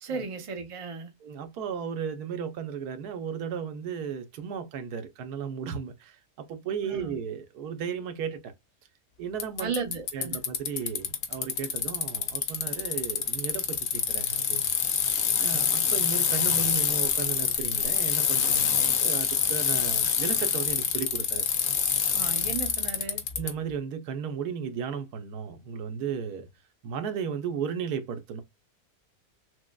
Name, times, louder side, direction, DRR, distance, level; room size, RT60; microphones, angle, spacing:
voice 1, 0.0-1.1 6.8-7.2 9.6-10.4 18.8-19.0 22.1-23.2, right 5 dB, 30° right, 0.6 m, -35 dB
voice 2, 1.2-8.5 9.2-9.7 10.1-14.7 15.4-21.5 23.4-26.5 26.8-28.4, right 7 dB, 85° right, 1.3 m, -35 dB
Bicycle, 9.4-23.5, left 7 dB, 70° left, 1.1 m, -26 dB
6.1 x 2.1 x 2.2 m
omnidirectional pair, 1.6 m